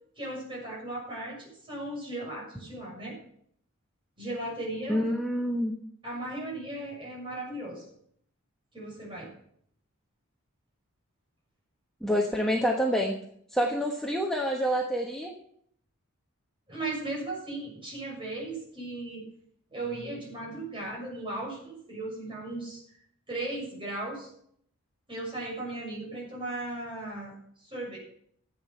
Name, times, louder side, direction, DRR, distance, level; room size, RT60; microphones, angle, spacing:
voice 1, 0.2-3.1 4.2-5.1 6.0-7.8 8.7-9.3 16.7-19.3 19.7-22.8 23.3-24.3 25.1-27.3 27.6-28.0, right 2 dB, 25° right, -3 dB, 6.5 m, -36 dB
voice 2, 4.9-5.7 12.0-13.2 13.5-15.3, equal, ahead, -1 dB, 1.2 m, -27 dB
14.0 x 9.0 x 5.7 m, 0.65 s
head